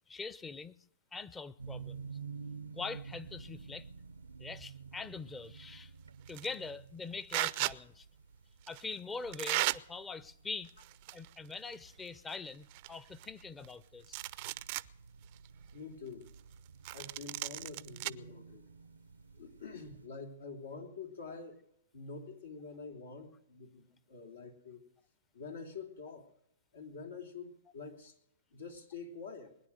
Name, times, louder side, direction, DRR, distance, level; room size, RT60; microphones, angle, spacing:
voice 1, 0.1-0.8 1.1-2.1 2.7-3.9 4.4-5.9 6.3-8.1 8.7-10.7 11.1-14.2, left 4 dB, 15° left, 18 dB, 0.7 m, -43 dB
sound 1, 1.6-20.1, right 5 dB, 90° right, 0.7 m, -51 dB
sound 2, 6.3-6.5 7.3-7.7 8.7-8.8 9.3-9.8 10.7-11.3 11.6-11.7 12.3-12.4 12.7-13.7 14.0-14.9 15.4-15.5 16.8-18.1, right 21 dB, 45° right, 0.5 m, -35 dB
voice 2, 15.7-16.3 16.9-18.6 19.3-21.6 21.9-24.8 25.3-26.3 26.7-28.2 28.5-29.6, left 4 dB, 80° left, 3 dB, 3.5 m, -47 dB
21.5 x 10.0 x 6.4 m, 0.75 s
hypercardioid pair, 120°, 0 cm